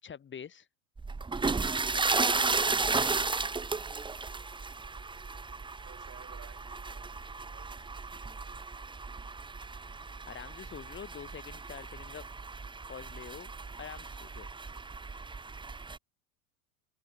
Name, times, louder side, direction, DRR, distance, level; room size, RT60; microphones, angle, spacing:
voice 1, 0.0-0.7 1.9-2.4 10.3-12.3 12.9-13.5 13.8-14.5, left 7 dB, 25° left, 6.2 m, -45 dB
sound 1, 1.0-16.0, right 4 dB, 10° right, 1.8 m, -34 dB
voice 2, 5.8-8.2, right 10 dB, 30° right, 4.5 m, -57 dB
hypercardioid pair, 105°, 45 cm